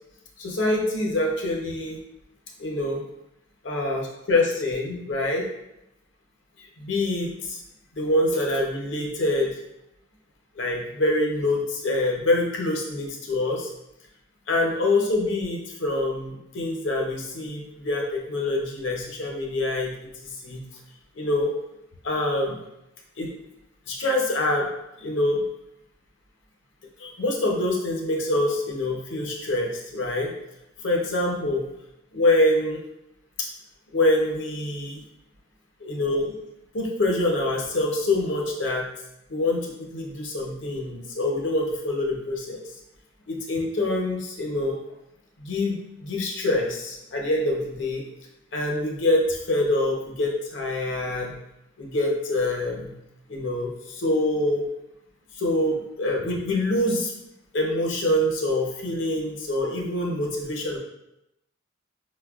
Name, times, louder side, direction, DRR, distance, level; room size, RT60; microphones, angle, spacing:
voice 1, 0.4-2.0 2.6-3.0 3.7-4.0 4.3-5.4 6.8-7.6 8.0-9.5 10.6-13.7 14.5-20.6 21.2-21.5 22.0-22.6 23.2-23.3 23.9-24.7 25.0-25.4 27.0-30.3 30.8-31.6 32.1-32.8 33.4-33.5 33.9-35.0 35.8-36.3 36.7-38.9 39.3-42.6 43.3-44.8 45.4-48.0 48.5-51.3 51.8-52.9 53.3-54.6 55.4-57.1 57.5-60.8, left 1 dB, 65° left, -1 dB, 0.7 m, -25 dB
5.2 x 2.2 x 2.3 m, 0.86 s
head